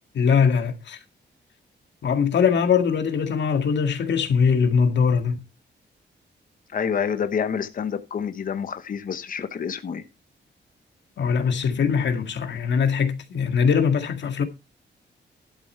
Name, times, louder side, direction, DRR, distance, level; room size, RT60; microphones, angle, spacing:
voice 1, 0.1-1.0 2.0-5.4 11.2-14.4, left 6 dB, 70° left, 2.0 m, -21 dB
voice 2, 6.7-10.0, left 7 dB, 45° left, 0.9 m, -28 dB
12.0 x 6.9 x 4.4 m
wide cardioid pair, 170°, 19 cm